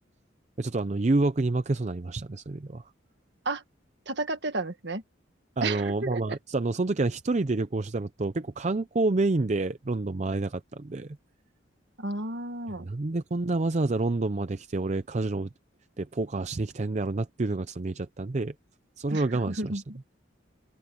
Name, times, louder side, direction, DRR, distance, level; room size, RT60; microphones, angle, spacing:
voice 1, 0.6-2.9 5.6-11.2 12.8-15.5 16.0-18.5 19.0-19.8, right 2 dB, 35° right, 0.5 m, -28 dB
voice 2, 4.1-5.0 5.6-6.4 12.0-12.9 19.1-20.0, right 2 dB, 60° right, 1.8 m, -32 dB
open air
head